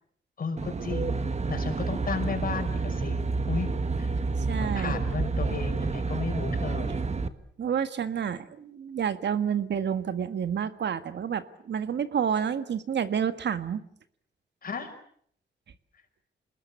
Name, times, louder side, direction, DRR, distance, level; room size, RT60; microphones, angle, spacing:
voice 1, 0.4-3.2 3.5-3.7 4.0-4.1 4.6-7.0 14.6-14.9, left 5 dB, 50° left, 6 dB, 5.9 m, -34 dB
Aircraft, 0.6-7.3, right 4 dB, 35° right, 1.5 m, -29 dB
voice 2, 4.5-5.0 7.6-13.8, right 8 dB, 70° right, 11 dB, 1.7 m, -29 dB
28.0 x 20.5 x 8.4 m, 0.65 s
wide cardioid pair, 125°, 19 cm